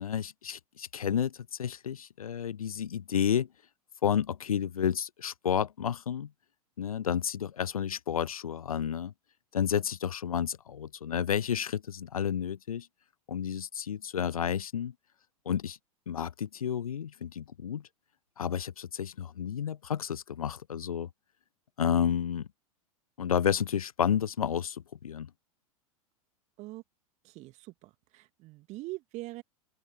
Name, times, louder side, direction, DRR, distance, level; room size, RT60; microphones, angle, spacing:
voice 1, 0.0-3.5 4.0-6.3 6.8-9.1 9.5-12.9 13.3-14.9 15.5-15.8 16.1-17.8 18.4-21.1 21.8-22.5 23.2-25.3, left 8 dB, 75° left, 0.5 m, -31 dB
voice 2, 27.2-29.4, right 20 dB, 40° right, 2.2 m, -43 dB
open air
figure-of-eight pair, 90°, 19 cm